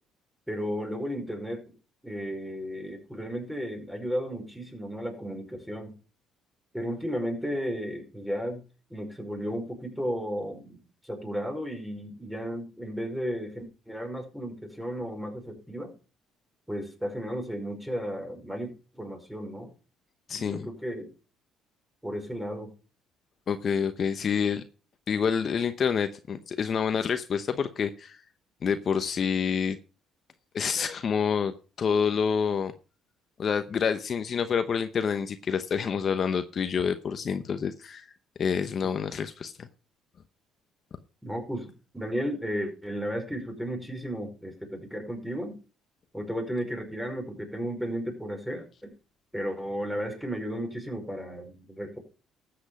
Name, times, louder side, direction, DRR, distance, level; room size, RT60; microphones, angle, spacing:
voice 1, 0.5-1.6 2.0-5.9 6.7-8.6 8.9-15.9 16.7-19.7 20.3-21.1 22.0-22.7 39.1-39.2 41.2-45.6 46.1-48.9 49.3-52.0, equal, 5° right, 3 dB, 5.3 m, -34 dB
voice 2, 20.3-20.7 23.5-24.6 25.1-28.2 28.6-29.8 30.5-32.7 33.4-38.0 38.4-39.7, left 6 dB, 50° left, 10 dB, 0.9 m, -28 dB
13.0 x 8.0 x 5.0 m, 0.35 s
supercardioid pair, 80°, 0 cm